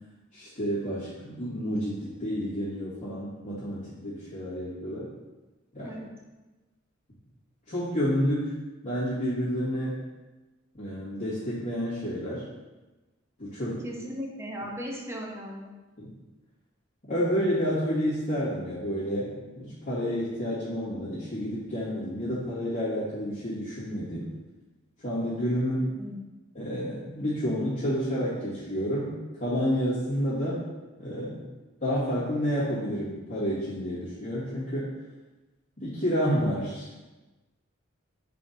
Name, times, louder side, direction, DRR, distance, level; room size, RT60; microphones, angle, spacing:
voice 1, 0.3-5.1 5.7-5.9 7.7-8.5 8.8-9.9 10.7-12.4 13.4-13.8 16.0-16.1 17.0-24.3 25.0-25.9 26.5-30.7 31.0-31.4 31.8-34.9 35.8-36.9, equal, 40° left, -13 dB, 2.1 m, -30 dB
voice 2, 5.8-6.1 13.8-15.7 26.0-26.2, equal, 15° right, -1 dB, 0.9 m, -37 dB
6.5 x 4.2 x 4.0 m, 1.2 s
head